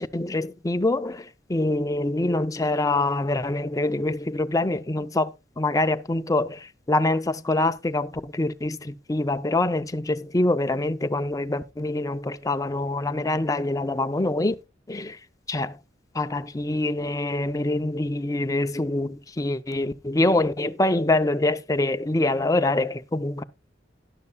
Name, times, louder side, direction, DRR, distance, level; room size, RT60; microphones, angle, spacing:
voice 1, 0.0-5.3 5.6-14.6 14.9-15.2 15.5-15.8 16.1-23.4, left 2 dB, 20° left, 0.5 m, -25 dB
12.0 x 11.0 x 2.3 m
head